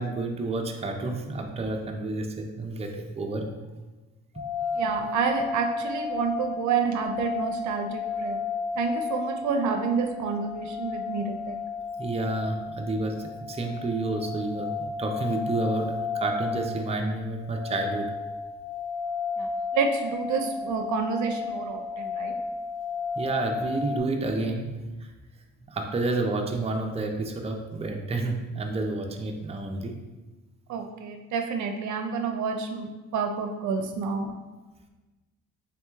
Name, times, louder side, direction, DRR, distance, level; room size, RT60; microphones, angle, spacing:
voice 1, 0.0-3.5 12.0-14.7 15.0-18.1 23.2-24.7 25.7-29.9, right 2 dB, 20° right, 3 dB, 0.5 m, -30 dB
sound 1, 4.3-24.0, left 4 dB, 75° left, 1.3 m, -33 dB
voice 2, 4.7-8.4 8.8-11.6 19.4-22.3 30.7-34.3, right 5 dB, 70° right, 4 dB, 0.5 m, -29 dB
3.7 x 3.0 x 3.5 m, 1.2 s
cardioid pair, 90°, 30 cm